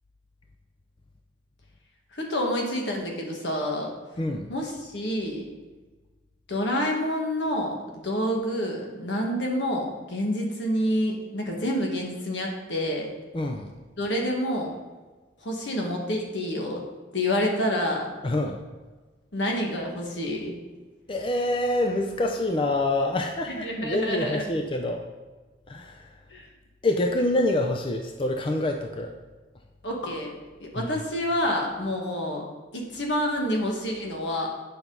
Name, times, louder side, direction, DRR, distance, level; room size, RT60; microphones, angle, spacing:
voice 1, 2.1-3.9 4.5-5.4 6.5-13.1 14.0-14.7 15.4-16.8 17.1-18.1 19.3-20.5 23.5-24.4 26.3-26.5 29.8-30.3 30.6-32.4 32.7-34.5, equal, 75° left, 0 dB, 1.6 m, -28 dB
voice 2, 4.2-4.5 13.3-13.7 18.2-18.6 21.1-25.0 25.7-26.1 26.8-29.1 30.8-31.0, left 1 dB, 30° left, 4 dB, 0.5 m, -26 dB
9.2 x 5.9 x 3.9 m, 1.3 s
head